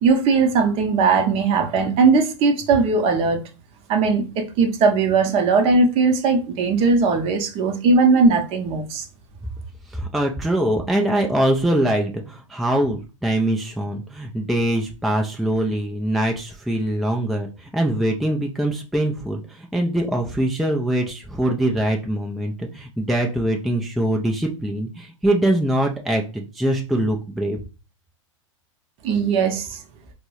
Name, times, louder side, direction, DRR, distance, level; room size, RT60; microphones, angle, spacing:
voice 1, 0.0-3.4 3.9-9.0 29.0-29.8, right 4 dB, 35° right, 0.7 m, -19 dB
voice 2, 9.9-27.6, right 1 dB, ahead, 0.3 m, -23 dB
4.3 x 2.0 x 3.0 m
figure-of-eight pair, 95°, 17 cm